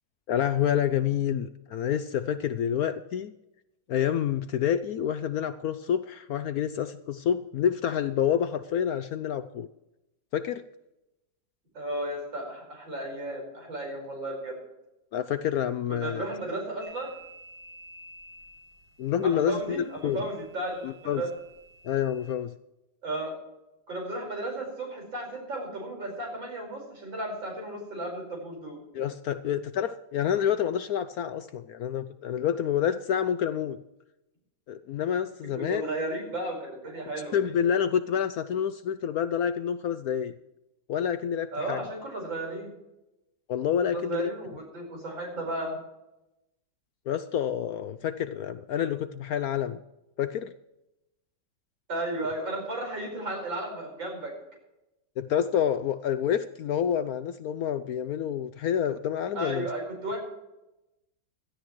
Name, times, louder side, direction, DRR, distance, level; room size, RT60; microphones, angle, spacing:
voice 1, 0.3-3.3 3.9-9.7 10.3-10.6 15.1-16.3 19.0-20.3 20.8-21.2 21.8-22.5 28.9-33.8 34.7-35.8 37.3-40.3 40.9-41.8 43.5-44.3 47.1-49.8 50.2-50.5 55.2-59.7, left 9 dB, 70° left, 12 dB, 0.9 m, -28 dB
voice 2, 11.7-14.6 15.9-17.2 19.2-21.3 23.0-23.3 23.9-28.8 35.6-37.4 41.5-42.7 43.8-45.8 51.9-54.3 59.4-60.2, right 1 dB, 85° right, 1 dB, 5.7 m, -34 dB
sound 1, 16.8-22.3, right 1 dB, 60° right, 4.3 m, -52 dB
17.0 x 13.0 x 3.1 m, 0.92 s
omnidirectional pair, 2.0 m